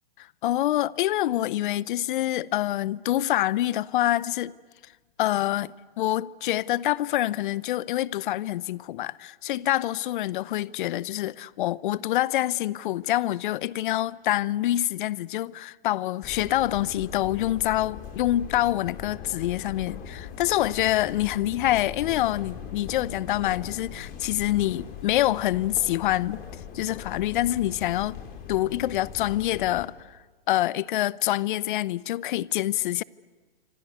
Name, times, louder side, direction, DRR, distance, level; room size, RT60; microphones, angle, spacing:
voice 1, 0.4-4.5 5.2-26.4 26.7-28.2 28.5-30.2 30.5-33.0, left 14 dB, 60° left, 0.7 m, -26 dB
sound 1, 16.2-29.9, left 8 dB, 30° left, 4.0 m, -40 dB
26.0 x 25.5 x 8.3 m
hypercardioid pair, 125°, 29 cm